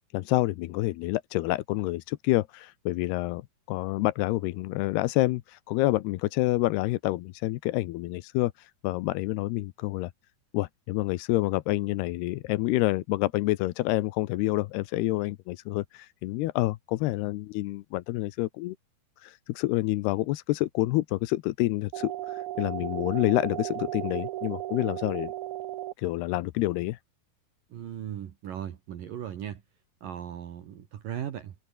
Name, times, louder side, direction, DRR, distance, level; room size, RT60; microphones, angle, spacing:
voice 1, 0.1-3.4 3.7-10.1 10.5-18.8 19.2-25.3 26.0-27.0, left 18 dB, 85° left, 2.8 m, -28 dB
sound 1, 21.9-25.9, right 15 dB, 80° right, 1.7 m, -35 dB
voice 2, 27.7-29.6 30.0-31.5, right 10 dB, 60° right, 3.2 m, -37 dB
omnidirectional pair, 4.7 m